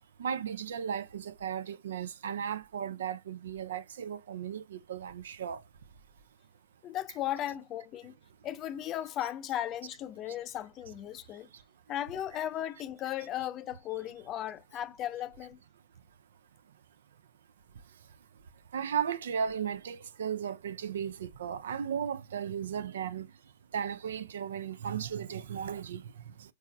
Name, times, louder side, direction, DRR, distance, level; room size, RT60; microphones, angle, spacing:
voice 1, 0.2-5.6 18.7-23.3 23.7-26.0, right 8 dB, 65° right, 0.4 m, -35 dB
voice 2, 6.8-8.1 8.4-11.5 11.9-15.6, left 12 dB, 30° left, 0.4 m, -36 dB
4.6 x 4.4 x 2.2 m
figure-of-eight pair, 100°, 0 cm